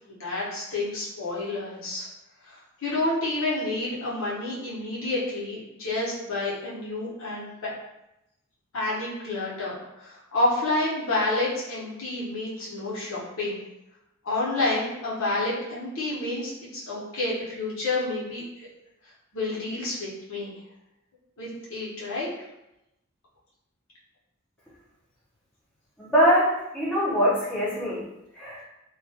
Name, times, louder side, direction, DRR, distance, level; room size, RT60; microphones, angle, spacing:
voice 1, 0.1-2.1 2.4-7.7 8.7-13.6 14.2-18.4 19.3-20.5 21.4-22.3, left 2 dB, 70° left, -7 dB, 0.9 m, -29 dB
voice 2, 26.0-28.1 28.3-28.6, equal, 5° left, -9 dB, 0.7 m, -23 dB
2.3 x 2.2 x 2.7 m, 0.89 s
head